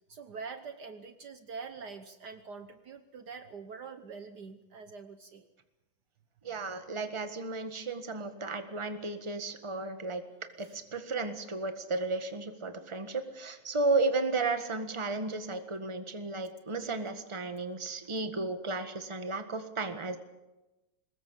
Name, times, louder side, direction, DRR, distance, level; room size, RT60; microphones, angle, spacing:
voice 1, 0.1-5.5 10.6-10.8, right 5 dB, 60° right, 9 dB, 1.5 m, -45 dB
voice 2, 6.4-10.2 10.6-20.2, right 3 dB, 15° right, 7 dB, 1.5 m, -33 dB
23.0 x 20.0 x 7.2 m, 1.0 s
omnidirectional pair, 2.2 m